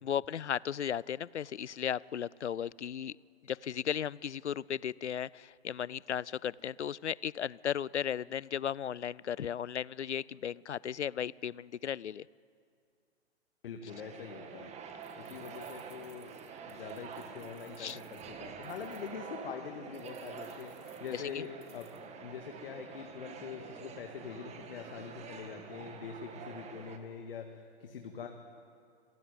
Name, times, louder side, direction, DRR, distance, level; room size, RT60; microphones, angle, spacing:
voice 1, 0.0-3.2 3.4-12.3 17.8-18.0 21.1-21.5, left 9 dB, 85° left, 24 dB, 0.5 m, -35 dB
sound 1, 1.7-1.8 2.7-2.8 3.4-3.8 4.5-4.8 5.5-5.8 6.5-6.7, left 1 dB, ahead, 4.4 m, -67 dB
voice 2, 13.6-14.7 15.2-16.3 16.7-21.9 22.2-28.3, left 6 dB, 55° left, 4 dB, 2.0 m, -44 dB
sound 2, 13.9-27.0, right 6 dB, 20° right, 1.9 m, -47 dB
sound 3, 15.0-19.1 19.9-22.0, right 2 dB, 90° right, 3.5 m, -63 dB
26.5 x 16.5 x 9.3 m, 2.3 s
figure-of-eight pair, 120°, 34 cm